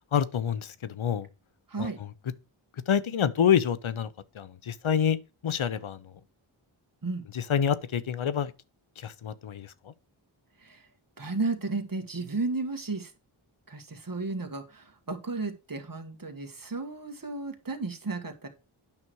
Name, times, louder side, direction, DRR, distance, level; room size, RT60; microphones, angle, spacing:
voice 1, 0.1-1.3 1.8-1.9 2.9-4.1 4.3-5.2 5.4-6.1 7.3-8.5 9.0-9.9, left 8 dB, 70° left, 0.9 m, -27 dB
voice 2, 11.2-13.1 13.7-18.5, right 3 dB, 40° right, 2.0 m, -33 dB
8.9 x 6.0 x 4.7 m
cardioid pair, 40°, 49 cm